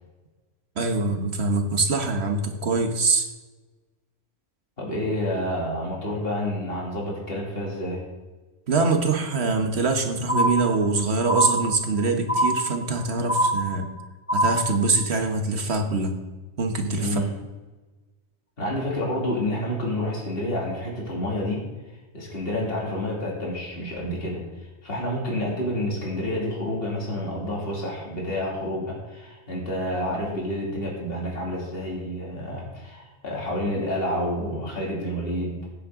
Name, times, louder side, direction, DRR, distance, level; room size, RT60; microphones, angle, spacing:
voice 1, 0.8-3.3 8.7-13.9 14.3-16.2 16.6-17.3, right 3 dB, 60° right, 5 dB, 1.5 m, -24 dB
voice 2, 4.8-8.1 17.0-17.3 18.6-21.7 22.1-24.4 24.8-35.7, left 1 dB, 50° left, -3 dB, 2.8 m, -29 dB
sound 1, 10.3-11.0 11.3-12.0 12.3-13.0 13.3-14.0 14.3-15.0, right 1 dB, 25° left, 2.9 m, -24 dB
16.5 x 7.6 x 3.8 m, 1.2 s
omnidirectional pair, 1.2 m